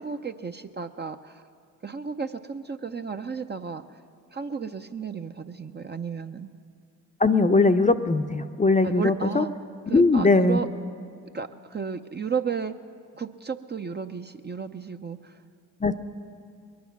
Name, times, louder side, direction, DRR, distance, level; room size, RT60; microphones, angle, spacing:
voice 1, 0.0-1.4 1.8-4.0 4.3-6.5 8.8-9.5 9.9-10.7 11.3-12.8 13.1-15.4, right 6 dB, 25° right, 7 dB, 0.6 m, -33 dB
voice 2, 7.2-9.4 9.9-10.6 15.8-15.9, left 3 dB, 20° left, 8 dB, 0.7 m, -20 dB
21.5 x 9.5 x 5.9 m, 2.3 s
hypercardioid pair, 45°, 39 cm